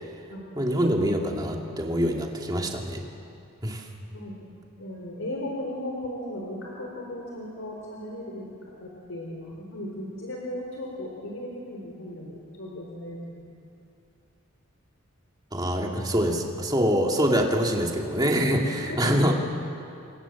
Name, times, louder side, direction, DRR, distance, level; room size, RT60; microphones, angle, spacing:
voice 1, 0.6-3.0 3.6-3.9 15.5-19.3, equal, 20° right, 0 dB, 2.6 m, -25 dB
voice 2, 4.1-4.5 4.8-8.5 8.8-13.5 15.9-16.0 18.5-19.1, left 1 dB, 75° left, -2 dB, 3.9 m, -36 dB
29.5 x 25.0 x 7.4 m, 2.5 s
head